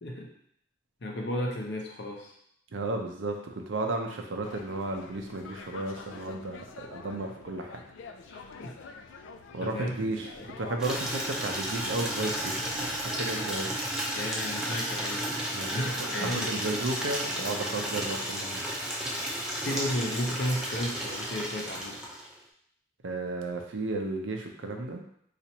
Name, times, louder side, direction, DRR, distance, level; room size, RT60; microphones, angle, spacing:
voice 1, 1.0-2.3 8.3-8.8 9.6-10.0 10.3-10.5 14.1-15.3 15.7-16.7 19.6-22.0, left 1 dB, 60° left, 0 dB, 0.7 m, -33 dB
voice 2, 2.7-7.8 9.5-10.3 10.6-12.5 12.8-13.7 15.5-15.7 16.2-18.6 23.0-25.0, right 2 dB, 85° right, 2 dB, 0.6 m, -33 dB
sound 1, 4.4-13.5, left 4 dB, 80° left, 0.3 m, -47 dB
Water tap faucet / Liquid, 10.8-22.4, equal, 5° right, 0.5 m, -33 dB
4.2 x 2.5 x 2.9 m, 0.70 s
head